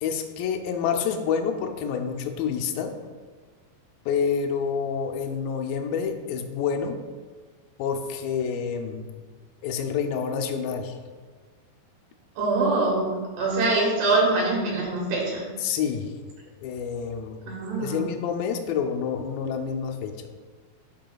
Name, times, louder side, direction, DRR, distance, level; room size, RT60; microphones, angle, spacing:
voice 1, 0.0-2.9 4.1-7.0 7.8-9.1 9.6-11.0 15.6-16.1 16.6-17.4 17.8-20.3, left 6 dB, 80° left, 4 dB, 2.2 m, -28 dB
voice 2, 12.4-15.4 17.5-18.0, right 2 dB, 90° right, -3 dB, 3.6 m, -24 dB
10.5 x 4.9 x 2.3 m, 1.5 s
omnidirectional pair, 4.5 m